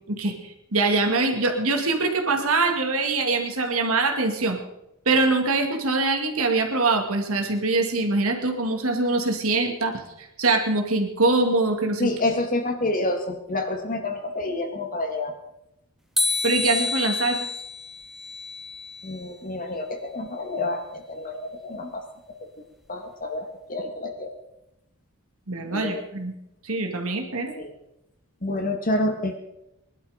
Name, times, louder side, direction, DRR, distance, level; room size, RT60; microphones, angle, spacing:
voice 1, 0.1-4.6 5.1-12.1 16.4-17.5 25.5-26.3 26.6-27.5, right 3 dB, 70° right, 4 dB, 2.4 m, -23 dB
voice 2, 12.0-15.3 19.0-22.4 22.9-24.3 25.7-26.0 27.5-27.7 28.4-29.4, left 2 dB, 40° left, 4 dB, 2.1 m, -28 dB
sound 1, 16.2-19.3, left 3 dB, ahead, 1.1 m, -28 dB
21.0 x 11.5 x 5.1 m, 0.86 s
head